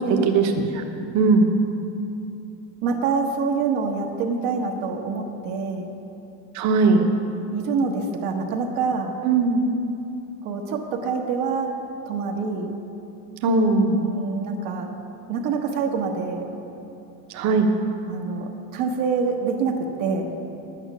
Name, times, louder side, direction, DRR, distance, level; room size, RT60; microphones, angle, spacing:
voice 1, 0.2-0.8 1.1-1.5 6.5-7.0 9.2-9.6 13.4-14.0 17.3-17.7, right 3 dB, 45° right, 3 dB, 1.2 m, -19 dB
voice 2, 2.8-5.9 7.5-9.1 10.4-11.7 12.1-12.7 14.0-14.9 15.3-16.4 18.1-20.3, right 5 dB, 60° right, 1 dB, 1.2 m, -26 dB
10.0 x 9.0 x 6.1 m, 2.8 s
cardioid pair, 135°, 39 cm